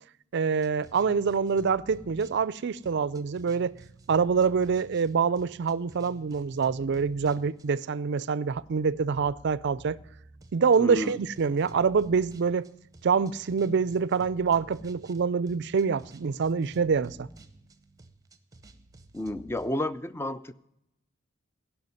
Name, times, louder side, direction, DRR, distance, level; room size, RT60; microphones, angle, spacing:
voice 1, 0.3-3.7 4.1-10.0 10.5-12.7 13.0-17.3, right 5 dB, 55° right, 0.4 m, -26 dB
sound 1, 0.6-7.9 8.5-19.7, right 2 dB, 15° right, 0.9 m, -52 dB
voice 2, 10.8-11.1 19.1-20.5, left 1 dB, 10° left, 0.4 m, -31 dB
16.0 x 5.8 x 9.6 m
head